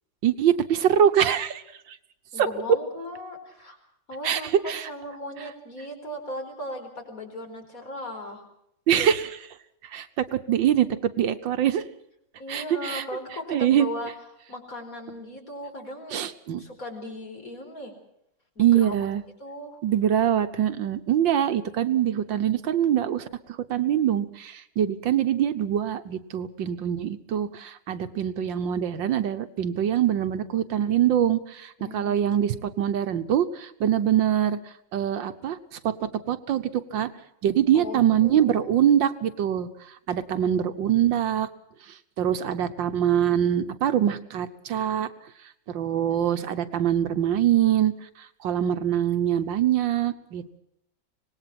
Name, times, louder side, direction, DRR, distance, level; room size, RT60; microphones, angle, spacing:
voice 1, 0.2-1.6 1.9-2.0 2.4-2.5 4.2-4.4 4.7-4.9 8.9-9.5 9.9-10.9 11.2-11.8 12.5-13.0 13.5-13.9 16.1-16.6 18.6-19.2 19.8-23.3 23.7-34.6 34.9-37.1 37.4-39.7 40.1-41.5 42.2-45.1 45.7-47.9 48.4-50.6, right 10 dB, 75° right, 10 dB, 1.7 m, -24 dB
voice 2, 2.3-3.8 4.1-8.4 12.4-14.1 14.5-16.2 16.6-17.9 18.5-19.0 19.4-19.8 31.8-32.6 37.7-38.9, left 1 dB, 45° left, 3 dB, 4.9 m, -37 dB
25.5 x 19.5 x 6.0 m, 0.77 s
omnidirectional pair, 2.1 m